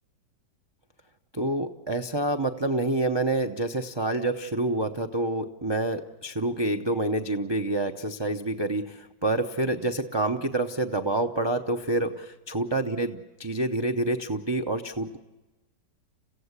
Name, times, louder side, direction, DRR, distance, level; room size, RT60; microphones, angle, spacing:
voice 1, 1.3-15.2, right 2 dB, 30° right, 4 dB, 0.4 m, -27 dB
28.5 x 15.5 x 8.2 m, 1.1 s
omnidirectional pair, 1.8 m